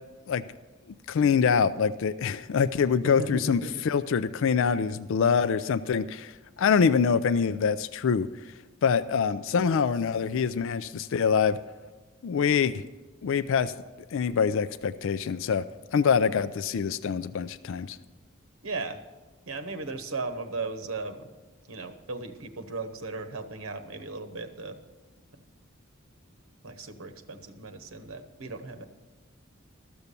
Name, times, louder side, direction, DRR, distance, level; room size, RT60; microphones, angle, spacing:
voice 1, 1.1-6.3 6.6-8.3 8.8-11.6 12.2-12.8 13.2-13.7 14.1-15.6 15.9-18.0, left 6 dB, 65° left, 14 dB, 0.4 m, -25 dB
voice 2, 3.0-3.7 18.6-19.0 19.5-21.3 21.7-24.8 26.6-28.9, right 3 dB, 85° right, 7 dB, 1.0 m, -36 dB
13.5 x 7.0 x 6.8 m, 1.2 s
head